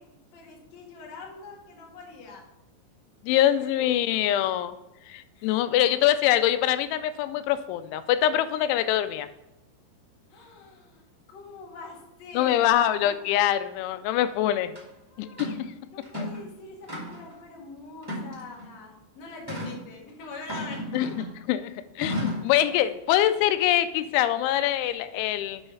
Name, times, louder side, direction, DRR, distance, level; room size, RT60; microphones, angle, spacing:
voice 1, 0.0-2.4 3.8-3.9 5.3-6.1 10.3-13.1 15.1-15.5 15.9-21.1 22.7-22.9, left 3 dB, 50° left, -1 dB, 2.3 m, -44 dB
voice 2, 3.2-4.8 5.1-9.3 12.3-14.7 15.2-15.6 16.2-16.3 20.9-21.1 21.5-21.7 22.0-25.6, left 12 dB, 90° left, 11 dB, 3.0 m, -24 dB
sound 1, 14.7-14.8 15.4-15.6 16.0-16.4 16.9-17.3 18.0-18.7 19.5-19.8 20.5-21.3 22.0-22.5, left 1 dB, 15° right, 0.7 m, -33 dB
8.9 x 5.5 x 5.5 m, 0.94 s
omnidirectional pair, 5.3 m